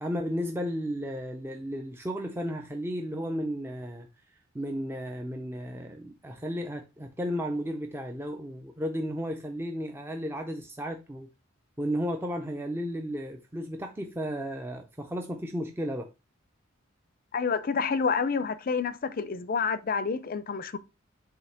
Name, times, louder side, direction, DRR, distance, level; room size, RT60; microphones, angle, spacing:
voice 1, 0.0-4.1 4.5-11.3 11.8-16.1, equal, 10° right, 0.6 m, -33 dB
voice 2, 17.3-20.8, left 5 dB, 45° left, 0.5 m, -28 dB
7.5 x 2.9 x 5.7 m
head